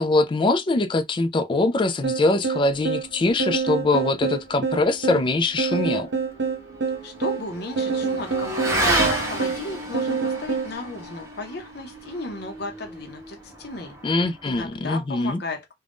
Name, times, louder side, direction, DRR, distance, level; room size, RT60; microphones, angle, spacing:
voice 1, 0.0-6.1 14.0-15.4, left 2 dB, 30° left, 0.3 m, -23 dB
sound 1, 2.0-10.7, right 5 dB, 85° right, 0.8 m, -27 dB
Motorcycle / Accelerating revving vroom, 5.8-14.6, right 1 dB, 15° right, 0.8 m, -31 dB
voice 2, 7.0-14.0 14.4-15.7, left 2 dB, 65° left, 0.6 m, -35 dB
2.5 x 2.2 x 3.4 m
head